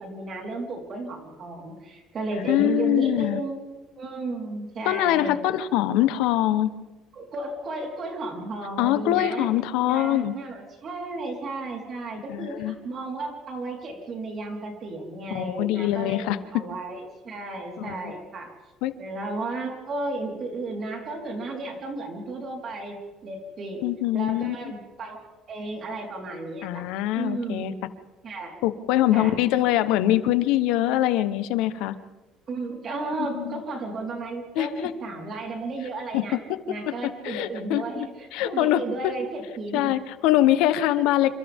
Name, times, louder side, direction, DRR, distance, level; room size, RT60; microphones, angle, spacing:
voice 1, 0.0-3.6 4.0-5.4 7.2-9.5 9.8-16.2 16.5-18.5 19.0-23.0 23.2-23.8 24.1-26.8 27.2-27.8 28.2-28.6 29.1-29.3 32.5-36.4 36.7-39.9, right 2 dB, 35° right, 1 dB, 4.2 m, -33 dB
voice 2, 2.5-3.4 4.8-6.7 8.8-10.3 12.3-12.7 15.3-16.6 17.8-18.1 18.8-18.9 23.8-24.7 26.6-27.7 28.6-31.9 33.2-33.6 34.6-34.9 36.1-36.6 36.9-39.1 39.7-41.3, left 13 dB, 85° left, 12 dB, 1.1 m, -24 dB
28.0 x 26.5 x 3.7 m, 1.2 s
cardioid pair, 170°, 0 cm